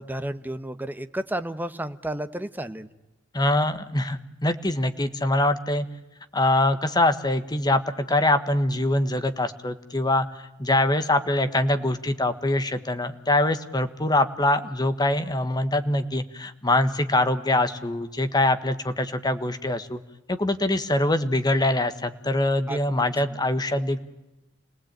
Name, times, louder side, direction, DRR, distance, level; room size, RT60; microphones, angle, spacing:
voice 1, 0.0-2.9 22.7-22.8, right 1 dB, 10° right, 10 dB, 1.1 m, -32 dB
voice 2, 3.3-5.9 6.3-20.0 20.3-24.0, left 1 dB, 20° left, 9 dB, 1.5 m, -24 dB
29.5 x 19.0 x 9.0 m, 0.99 s
head